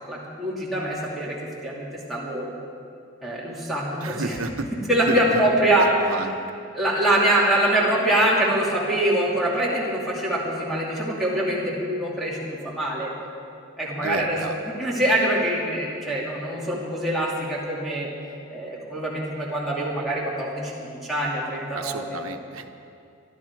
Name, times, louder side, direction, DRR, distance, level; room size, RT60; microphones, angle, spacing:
voice 1, 0.1-1.4 1.6-2.5 3.2-4.4 4.7-6.1 6.7-13.1 13.8-18.1 18.5-22.2, right 1 dB, ahead, -7 dB, 2.6 m, -24 dB
voice 2, 4.0-4.7 5.1-5.2 6.1-6.4 14.0-14.5 21.7-22.8, right 3 dB, 75° right, 6 dB, 1.1 m, -31 dB
23.5 x 12.5 x 4.8 m, 2.5 s
head